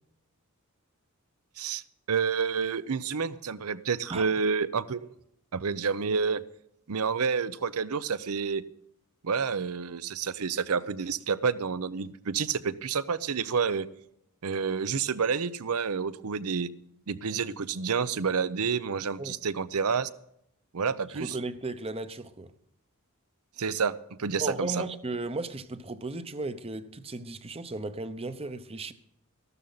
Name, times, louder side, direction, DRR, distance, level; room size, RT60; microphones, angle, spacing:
voice 1, 2.1-5.1 5.5-6.4 6.9-8.6 9.2-13.9 14.4-16.7 17.1-20.1 20.7-21.4 23.6-24.8, right 5 dB, 75° right, 0.7 m, -29 dB
voice 2, 21.1-22.5 24.4-28.9, right 2 dB, 25° right, 0.7 m, -35 dB
14.0 x 12.5 x 4.0 m
head